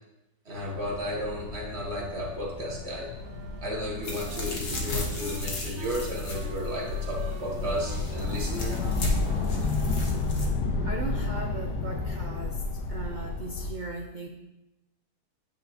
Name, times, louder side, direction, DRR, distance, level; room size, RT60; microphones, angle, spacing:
voice 1, 0.5-3.1 3.6-8.8, equal, 45° right, -2 dB, 1.7 m, -33 dB
sound 1, 0.6-13.7, left 3 dB, 85° left, 1.5 m, -32 dB
Wind instrument woodwind instrument, 3.2-10.8, right 8 dB, 70° right, 0.9 m, -47 dB
sound 2, 4.0-10.5, left 2 dB, 45° left, 1.5 m, -35 dB
voice 2, 10.8-12.6 12.9-14.3, right 2 dB, 85° right, 2 dB, 0.4 m, -37 dB
9.7 x 5.6 x 2.9 m, 0.96 s
omnidirectional pair, 1.7 m